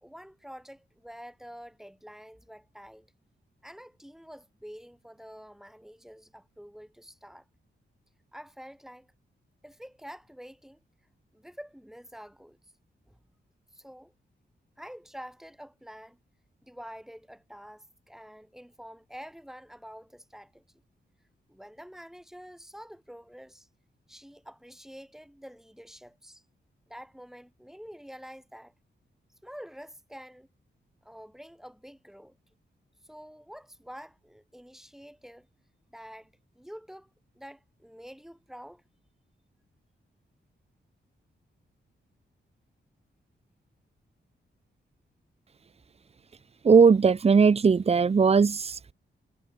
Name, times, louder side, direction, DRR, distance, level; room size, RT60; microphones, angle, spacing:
voice 1, 0.0-3.1 3.6-7.4 8.3-9.1 9.6-10.8 11.3-12.6 13.1-13.2 13.7-14.1 14.8-16.2 16.6-20.6 21.5-23.7 24.1-26.4 26.9-28.7 29.4-30.5 31.0-32.4 33.0-35.5 35.9-38.8, equal, ahead, 3.7 m, -47 dB
voice 2, 46.6-48.9, right 5 dB, 30° right, 0.5 m, -19 dB
wide cardioid pair, 105°, 20 cm